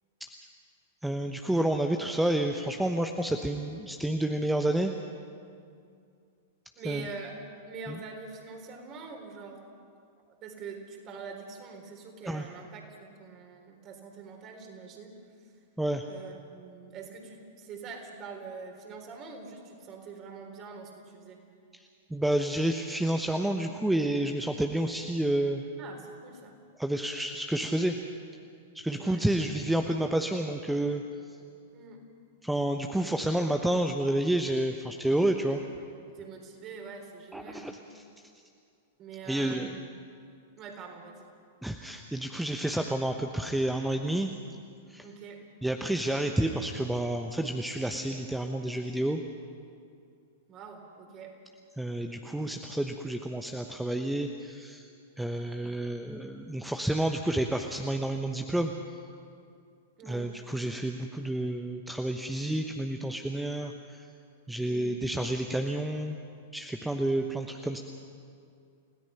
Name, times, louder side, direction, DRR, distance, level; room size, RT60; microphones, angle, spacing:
voice 1, 1.0-4.9 6.8-7.1 7.9-8.0 12.3-12.4 15.8-16.1 22.1-25.6 26.8-28.0 28.7-31.0 32.4-35.6 37.3-37.8 39.3-39.7 41.6-44.3 44.9-45.0 45.6-49.2 51.8-54.9 55.2-58.7 60.0-63.7 64.5-66.2 66.5-67.8, right 1 dB, 5° right, 5 dB, 1.0 m, -29 dB
voice 2, 6.8-7.4 7.7-9.7 10.3-15.5 16.1-21.4 25.8-26.6 29.0-29.3 31.7-32.0 36.1-37.7 39.0-40.1 40.6-41.3 45.0-45.4 50.5-51.4 60.0-60.3 64.6-65.0, right 5 dB, 35° right, 3 dB, 4.0 m, -44 dB
29.5 x 17.0 x 5.8 m, 2.4 s
figure-of-eight pair, 100°, 0 cm